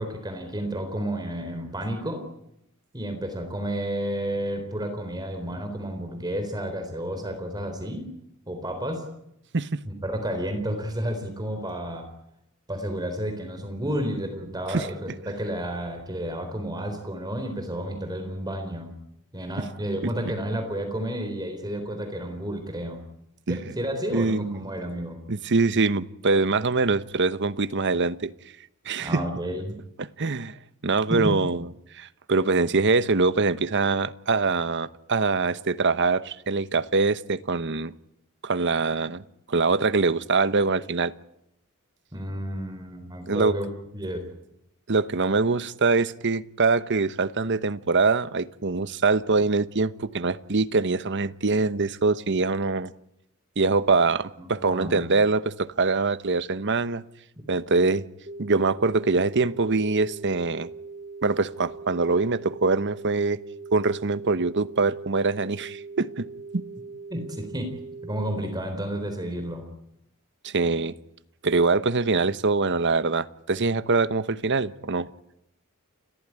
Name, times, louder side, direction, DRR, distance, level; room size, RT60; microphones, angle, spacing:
voice 1, 0.0-2.3 2.9-8.1 8.5-9.0 9.8-12.1 12.7-18.9 19.3-23.0 23.5-25.2 29.0-29.8 31.1-31.4 42.1-43.7 43.9-44.2 54.4-55.0 67.1-67.7 68.0-69.6, right 1 dB, 20° right, 6 dB, 3.8 m, -31 dB
voice 2, 14.7-15.1 20.0-20.3 23.5-23.6 24.1-24.7 25.3-28.3 28.8-29.2 30.2-30.6 30.8-31.7 31.9-37.9 38.4-41.1 43.3-43.6 44.9-52.9 53.6-57.0 57.5-58.0 58.4-60.7 61.2-63.4 63.7-66.2 66.5-66.6 70.4-70.9 71.4-75.1, right 3 dB, 55° right, 14 dB, 1.0 m, -24 dB
sound 1, 58.3-68.3, right 4 dB, 40° right, 2.2 m, -41 dB
29.5 x 14.5 x 9.9 m, 0.80 s
head